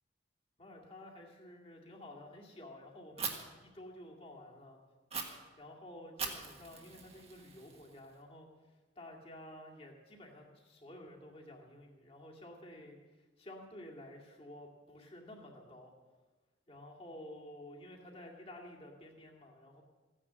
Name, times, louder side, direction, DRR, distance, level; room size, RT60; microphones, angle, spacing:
voice 1, 0.6-4.8 5.6-15.9 16.7-19.8, left 1 dB, 30° left, -1 dB, 2.3 m, -52 dB
Fire, 3.2-3.3 5.1-5.2 6.2-8.1, right 6 dB, 35° right, 1.6 m, -41 dB
15.0 x 9.9 x 7.5 m, 1.3 s
head